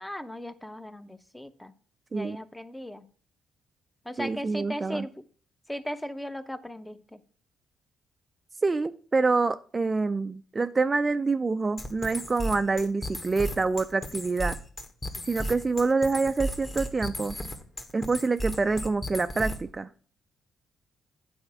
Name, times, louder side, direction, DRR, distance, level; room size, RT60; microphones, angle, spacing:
voice 1, 0.0-1.7 2.1-3.1 4.0-5.3 5.7-7.2, equal, 10° left, 11 dB, 0.7 m, -37 dB
voice 2, 4.2-5.1 8.6-14.6 15.3-17.4 17.9-19.9, right 3 dB, 25° right, 11 dB, 0.4 m, -26 dB
sound 1, 11.8-19.8, equal, 25° left, 1.4 m, -35 dB
8.9 x 4.3 x 6.0 m, 0.43 s
cardioid pair, 90°, 0 cm